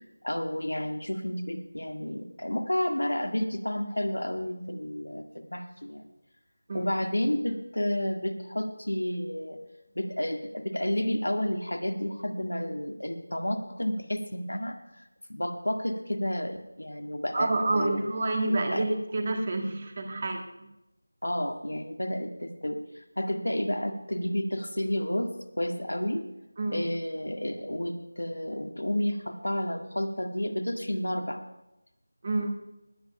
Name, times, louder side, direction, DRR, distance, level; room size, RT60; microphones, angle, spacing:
voice 1, 0.2-6.1 6.7-9.6 10.0-14.8 15.3-18.1 18.7-18.8 21.2-26.2 26.7-31.4, left 1 dB, 70° left, 6 dB, 1.8 m, -31 dB
voice 2, 17.3-20.4 26.6-26.9 32.2-32.5, right 2 dB, 30° right, 4 dB, 1.7 m, -28 dB
19.5 x 9.5 x 5.6 m, 0.95 s
figure-of-eight pair, 165°, 0 cm